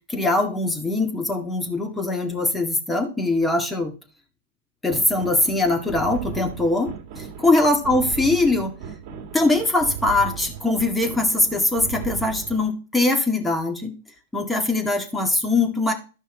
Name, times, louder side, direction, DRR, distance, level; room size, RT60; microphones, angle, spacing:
voice 1, 0.1-3.9 4.8-8.7 9.3-14.0 14.3-15.9, left 2 dB, 10° left, 4 dB, 1.9 m, -22 dB
sound 1, 4.9-12.7, right 9 dB, 45° right, 1.8 m, -36 dB
13.0 x 5.5 x 3.9 m, 0.35 s
hypercardioid pair, 110°, 0 cm